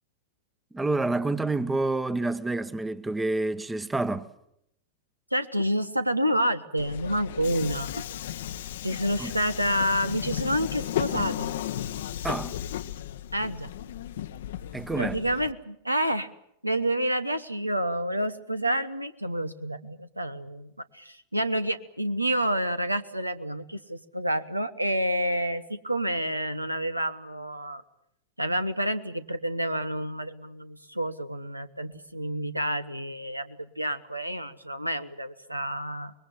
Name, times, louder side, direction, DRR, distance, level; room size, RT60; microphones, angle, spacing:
voice 1, 0.7-4.3 9.2-9.3 12.2-12.5 14.7-15.2, right 2 dB, 10° right, 1.0 m, -28 dB
voice 2, 5.3-8.0 8.8-11.5 13.3-13.7 15.0-16.3 16.6-20.7 20.9-27.8 28.4-36.1, equal, 85° right, 1.1 m, -29 dB
Subway metro underground, 6.8-15.5, left 11 dB, 60° left, 0.9 m, -34 dB
26.0 x 21.5 x 7.5 m
figure-of-eight pair, 90°, 0 cm